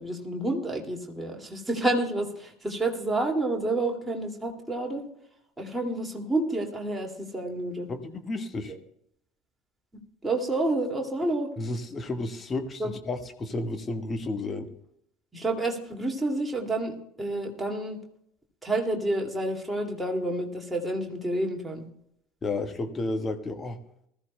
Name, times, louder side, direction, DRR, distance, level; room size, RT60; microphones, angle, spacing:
voice 1, 0.0-5.1 5.6-7.9 8.7-8.8 10.2-11.5 12.8-12.9 15.3-18.0 18.6-21.8, right 2 dB, 10° right, 0 dB, 2.3 m, -29 dB
voice 2, 7.9-8.8 11.6-14.7 22.4-23.8, left 2 dB, 25° left, 6 dB, 1.4 m, -32 dB
20.5 x 14.0 x 2.2 m, 0.74 s
figure-of-eight pair, 65°, 0 cm